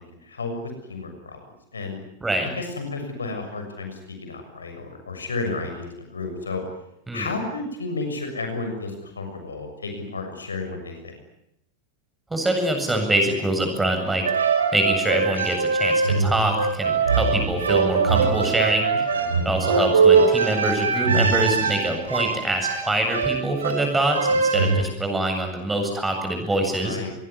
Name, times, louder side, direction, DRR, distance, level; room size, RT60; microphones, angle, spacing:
voice 1, 0.2-0.5 0.9-1.4 1.7-2.0 2.4-6.6 7.1-11.2 19.1-19.3 26.8-27.1, left 3 dB, 75° left, 5 dB, 6.7 m, -32 dB
voice 2, 2.2-2.5 7.1-7.3 12.3-14.2 14.7-18.9 19.4-27.0, right 1 dB, 10° right, 4 dB, 7.9 m, -24 dB
sound 1, 14.2-24.9, right 5 dB, 70° right, 4.1 m, -22 dB
25.5 x 22.0 x 10.0 m, 0.81 s
figure-of-eight pair, 90°, 0 cm